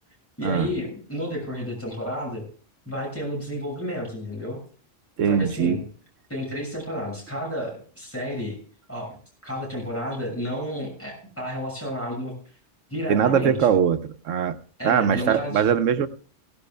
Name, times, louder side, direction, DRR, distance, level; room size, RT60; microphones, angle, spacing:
voice 1, 0.4-2.4 2.9-4.6 5.3-5.8 6.3-8.6 8.9-12.3 12.9-13.5 14.8-15.6, equal, 10° left, -1 dB, 6.5 m, -31 dB
voice 2, 5.2-5.8 13.1-14.6 14.8-16.1, right 7 dB, 90° right, 11 dB, 1.1 m, -21 dB
17.0 x 16.5 x 2.3 m, 0.42 s
omnidirectional pair, 1.3 m